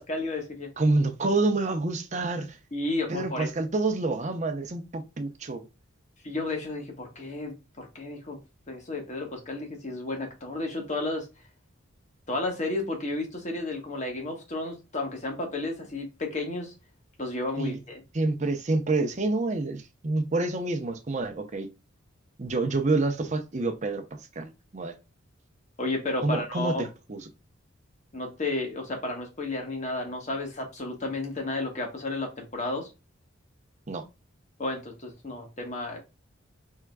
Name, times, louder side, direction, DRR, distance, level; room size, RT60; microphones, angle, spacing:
voice 1, 0.0-0.7 2.7-3.5 6.2-8.4 8.7-11.3 12.3-16.7 17.2-18.0 25.8-26.8 28.1-32.9 34.6-36.0, left 2 dB, 35° left, 1.2 m, -32 dB
voice 2, 0.8-2.6 3.1-5.7 17.6-17.8 18.1-21.7 22.4-24.9 26.2-27.2 33.9-34.0, right 2 dB, 35° right, 0.7 m, -28 dB
4.7 x 3.6 x 2.2 m
head